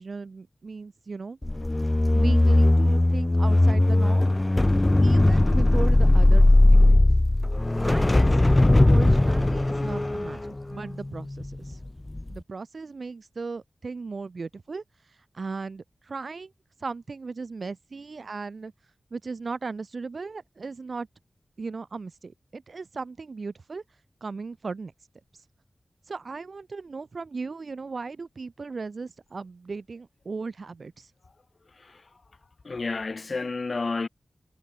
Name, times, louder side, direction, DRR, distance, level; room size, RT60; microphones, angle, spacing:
voice 1, 0.0-1.4 2.1-4.2 5.0-7.0 7.8-11.8 12.3-16.5 16.8-18.7 19.1-21.1 21.6-23.8 24.2-24.9 25.3-25.4 26.1-31.1, right 4 dB, 65° right, 3.1 m, -37 dB
sound 1, 1.4-11.7 12.1-12.4, left 1 dB, 25° left, 0.8 m, -19 dB
voice 2, 31.7-32.1 32.6-34.1, left 3 dB, 55° left, 3.0 m, -31 dB
wide cardioid pair, 75°, 0 cm